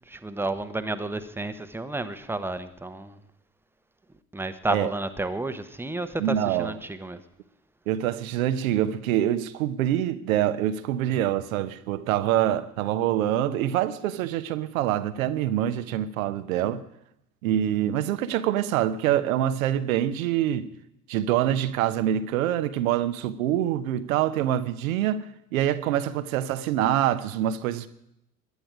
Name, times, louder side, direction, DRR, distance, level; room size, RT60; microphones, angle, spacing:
voice 1, 0.1-3.2 4.3-7.2, right 2 dB, 5° right, 1.1 m, -31 dB
voice 2, 6.2-6.8 7.9-16.8 17.4-20.7 21.1-25.2 25.5-27.9, right 11 dB, 65° right, 1.0 m, -25 dB
22.0 x 10.5 x 5.0 m
figure-of-eight pair, 60°, 45 cm